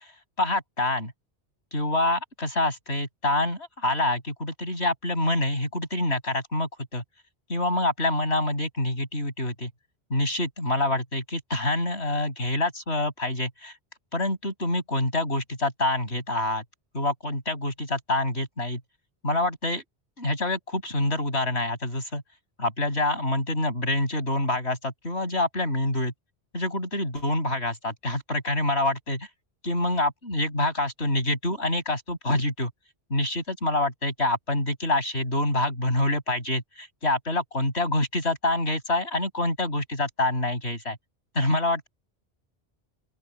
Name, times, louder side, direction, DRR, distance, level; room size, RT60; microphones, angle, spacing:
voice 1, 0.4-1.1 1.7-7.0 7.5-9.7 10.1-13.7 14.1-16.6 16.9-18.8 19.2-19.8 20.2-22.2 22.6-26.1 26.5-29.3 29.6-32.7 33.1-41.0 41.3-41.9, left 1 dB, 85° left, 8.5 m, -26 dB
open air
omnidirectional pair, 1.1 m